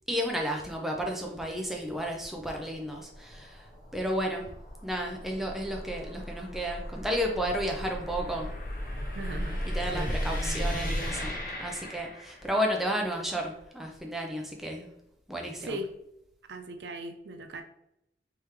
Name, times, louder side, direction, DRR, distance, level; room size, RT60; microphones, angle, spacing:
voice 1, 0.1-3.7 3.9-4.4 4.8-8.5 9.7-11.3 11.6-14.9 15.3-15.8, equal, ahead, 0 dB, 0.6 m, -32 dB
sound 1, 1.3-12.6, equal, 50° left, 1.0 m, -36 dB
voice 2, 9.2-11.1 15.6-15.9 16.5-17.6, right 1 dB, 80° right, 7 dB, 0.6 m, -39 dB
4.4 x 3.5 x 3.2 m, 0.81 s
head